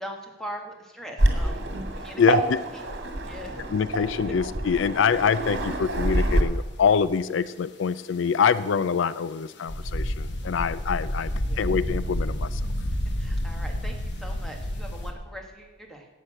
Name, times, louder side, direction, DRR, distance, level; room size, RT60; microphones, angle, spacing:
voice 1, 0.0-1.6 1.9-2.4 2.7-2.8 3.3-3.5 10.4-10.6 11.2-11.6 13.2-16.1, equal, ahead, 2 dB, 1.6 m, -41 dB
Waves surf, 1.2-6.4, right 1 dB, 60° right, 2.0 m, -26 dB
voice 2, 2.2-2.6 3.7-12.6, left 6 dB, 75° left, 16 dB, 0.4 m, -25 dB
sound 1, 9.7-15.1, equal, 60° left, 1.2 m, -29 dB
11.5 x 8.3 x 7.7 m, 1.3 s
head